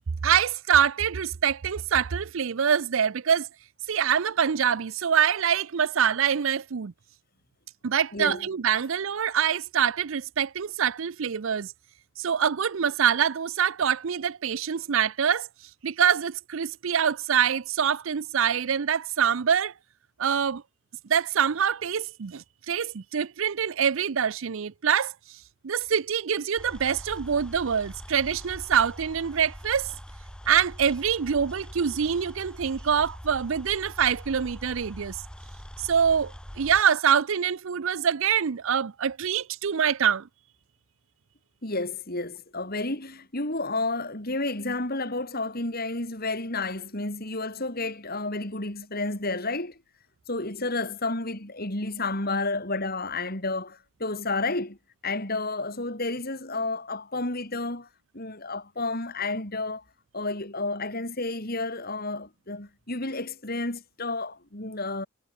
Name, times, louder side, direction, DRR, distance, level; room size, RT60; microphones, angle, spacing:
voice 1, 0.2-3.5 3.9-6.9 7.8-11.7 12.2-15.5 15.8-19.7 20.2-20.6 21.1-25.1 25.6-29.9 30.5-35.2 35.8-40.3, right 8 dB, 65° right, 0.5 m, -25 dB
voice 2, 8.1-8.5 41.6-49.8 50.3-54.8 55.0-57.9 58.1-59.8 60.1-65.1, left 2 dB, 45° left, 4.4 m, -31 dB
sound 1, 26.6-36.8, equal, 5° left, 3.8 m, -43 dB
head